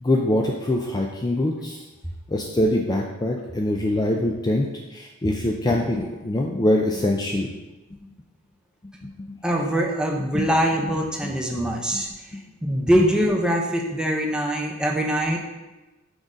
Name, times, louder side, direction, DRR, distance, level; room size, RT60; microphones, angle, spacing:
voice 1, 0.0-1.8 2.3-7.5 10.3-10.5 11.2-11.3 11.9-12.0, left 1 dB, 20° left, 0 dB, 0.4 m, -23 dB
voice 2, 9.4-12.1 12.6-15.4, equal, 5° right, 0 dB, 0.8 m, -23 dB
6.1 x 3.9 x 5.1 m, 1.1 s
head